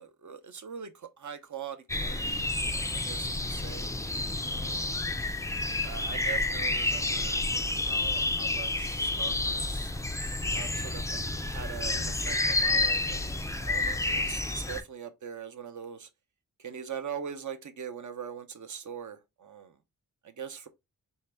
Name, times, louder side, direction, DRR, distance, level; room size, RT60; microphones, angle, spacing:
voice 1, 0.0-3.9 4.5-5.2 5.8-7.5 7.9-9.9 10.5-11.2 11.4-16.1 16.6-19.8 20.2-20.7, right 7 dB, 55° right, 0.8 m, -42 dB
sound 1, 1.9-14.8, left 2 dB, 10° left, 0.4 m, -30 dB
4.2 x 2.7 x 3.3 m
wide cardioid pair, 115°, 36 cm